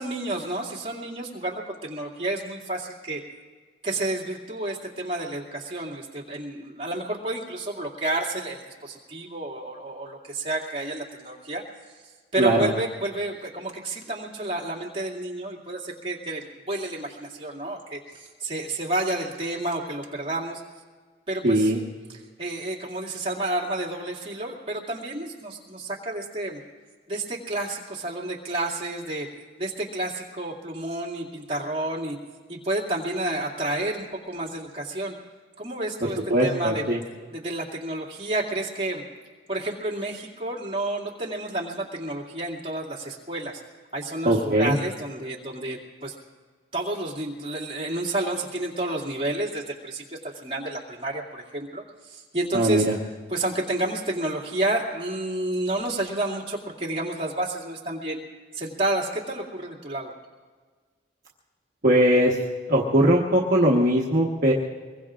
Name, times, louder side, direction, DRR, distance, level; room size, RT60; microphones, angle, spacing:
voice 1, 0.0-3.2 3.8-11.6 12.3-20.6 21.3-21.7 22.1-26.6 27.1-29.3 29.6-32.2 32.5-35.1 35.6-36.8 37.3-39.0 39.5-43.6 43.9-46.1 46.7-52.9 53.3-58.2 58.5-60.1, right 1 dB, 30° right, -4 dB, 2.4 m, -30 dB
voice 2, 12.4-12.7 21.4-21.8 36.3-37.0 44.2-44.8 52.5-52.9 61.8-62.4 62.7-64.5, right 1 dB, 45° right, -4 dB, 1.2 m, -20 dB
25.0 x 22.0 x 2.5 m, 1.5 s
head